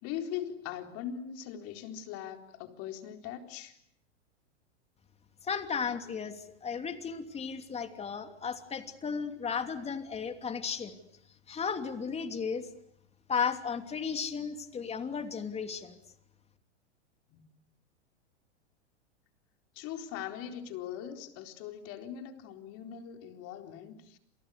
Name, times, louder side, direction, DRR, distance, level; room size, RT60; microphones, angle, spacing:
voice 1, 0.0-3.8 17.3-17.5 19.7-24.2, left 9 dB, 40° left, 5 dB, 4.2 m, -41 dB
voice 2, 5.4-10.9 11.5-12.7 13.3-16.0, left 6 dB, 20° left, 7 dB, 3.0 m, -34 dB
29.0 x 28.5 x 6.7 m, 0.72 s
hypercardioid pair, 115°, 35 cm